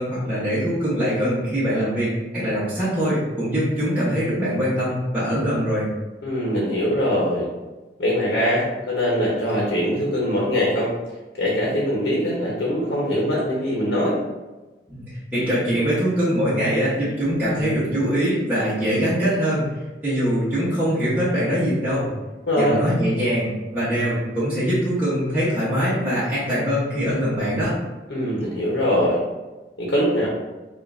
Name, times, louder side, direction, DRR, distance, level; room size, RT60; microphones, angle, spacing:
voice 1, 0.0-5.9 14.9-19.7 20.0-22.1 22.6-27.7, equal, 10° right, -12 dB, 1.1 m, -23 dB
voice 2, 6.2-7.5 8.0-10.9 11.4-14.2 22.5-22.8 28.1-29.2 29.8-30.3, equal, 75° left, -4 dB, 1.0 m, -22 dB
5.3 x 2.6 x 2.6 m, 1.1 s
head